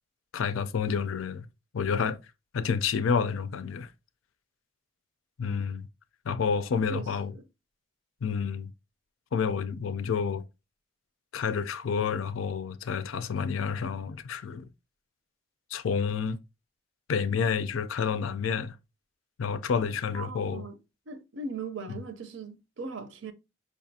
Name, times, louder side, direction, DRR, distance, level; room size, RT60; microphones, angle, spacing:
voice 1, 0.3-1.5 1.7-2.2 2.5-3.9 5.4-5.9 6.3-7.3 8.2-8.7 9.3-10.5 11.3-14.7 15.7-16.4 17.1-18.8 19.4-20.7 21.9-22.0, left 6 dB, 85° left, 0.4 m, -29 dB
voice 2, 6.9-7.4 20.1-20.8 21.1-23.3, right 4 dB, 70° right, 0.6 m, -39 dB
5.2 x 2.4 x 2.7 m
head